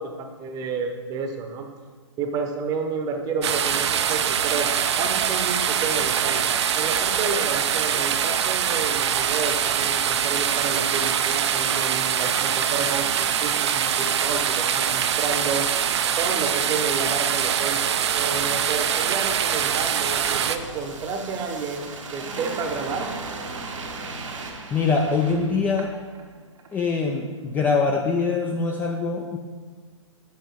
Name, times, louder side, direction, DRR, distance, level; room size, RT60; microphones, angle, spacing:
voice 1, 0.0-1.7 2.2-4.7 5.0-15.7 16.2-17.8 18.2-23.1, right 4 dB, 20° right, 5 dB, 0.8 m, -30 dB
sound 1, 3.4-20.6, right 8 dB, 60° right, 0.5 m, -23 dB
sound 2, 17.9-26.3 26.6-26.7, right 3 dB, 75° right, 1.2 m, -37 dB
voice 2, 24.7-25.9 26.7-29.4, left 4 dB, 10° left, 2 dB, 0.4 m, -23 dB
7.0 x 6.0 x 4.6 m, 1.5 s
hypercardioid pair, 135°, 16 cm